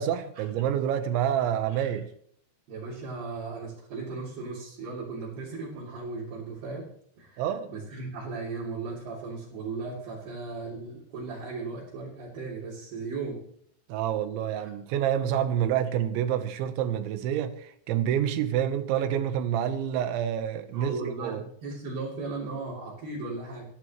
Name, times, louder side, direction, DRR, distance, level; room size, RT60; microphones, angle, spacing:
voice 1, 0.0-2.1 7.4-7.7 13.9-21.4, right 10 dB, 85° right, 3.4 m, -28 dB
voice 2, 2.7-6.8 7.2-13.4 14.6-14.7 20.7-21.3 21.6-23.7, right 3 dB, 60° right, 5.2 m, -36 dB
28.5 x 11.5 x 3.1 m
omnidirectional pair, 5.2 m